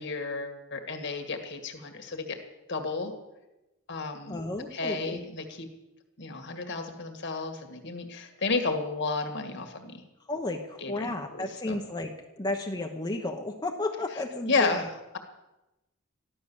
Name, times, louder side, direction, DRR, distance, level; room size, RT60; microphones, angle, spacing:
voice 1, 0.0-2.4 2.7-3.1 3.9-4.4 4.7-5.7 6.2-10.0 10.8-11.8 14.5-15.2, left 3 dB, 50° left, 5 dB, 2.0 m, -32 dB
voice 2, 4.3-5.2 10.3-12.1 12.4-14.9, left 2 dB, 20° left, 2 dB, 1.0 m, -33 dB
14.5 x 12.0 x 7.1 m, 1.0 s
head